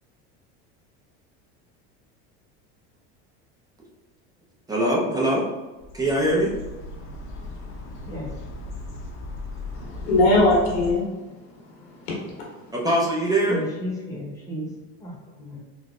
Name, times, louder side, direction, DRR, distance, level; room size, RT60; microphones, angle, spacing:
voice 1, 4.7-5.4 5.9-6.6 12.7-13.7, right 1 dB, 10° right, -4 dB, 0.6 m, -22 dB
sound 1, 5.8-10.9, left 2 dB, 40° left, 0.7 m, -37 dB
voice 2, 9.7-12.7, left 2 dB, 85° left, -4 dB, 1.4 m, -23 dB
voice 3, 13.5-14.7 15.0-15.6, equal, 10° left, -5 dB, 0.9 m, -33 dB
3.9 x 2.6 x 2.4 m, 1.1 s
supercardioid pair, 125°, 33 cm